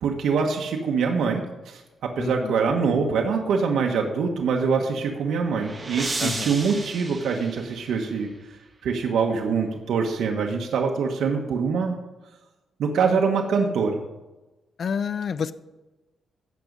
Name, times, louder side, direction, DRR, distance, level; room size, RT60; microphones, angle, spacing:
voice 1, 0.0-8.3 8.8-11.9 12.8-14.0, right 5 dB, 85° right, 1 dB, 1.1 m, -24 dB
voice 2, 2.2-2.6 6.2-6.5 14.8-15.5, left 6 dB, 50° left, 14 dB, 0.4 m, -28 dB
sound 1, 4.9-8.3, right 3 dB, 25° right, 1.4 m, -34 dB
16.0 x 6.0 x 5.3 m, 1.1 s
cardioid pair, 130°, 0 cm